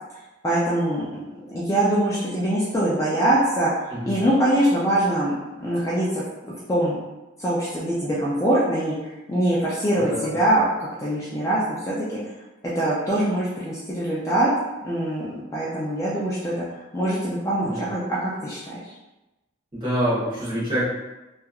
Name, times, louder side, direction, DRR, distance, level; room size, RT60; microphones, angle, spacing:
voice 1, 0.4-1.0 1.3-3.7 4.1-7.0 7.4-11.9 12.7-14.5 14.8-16.6 16.9-18.8, right 1 dB, 15° left, -8 dB, 0.4 m, -23 dB
voice 2, 9.9-10.3 17.6-17.8 19.7-20.8, equal, 25° right, -11 dB, 1.0 m, -26 dB
2.9 x 2.3 x 2.3 m, 1.0 s
head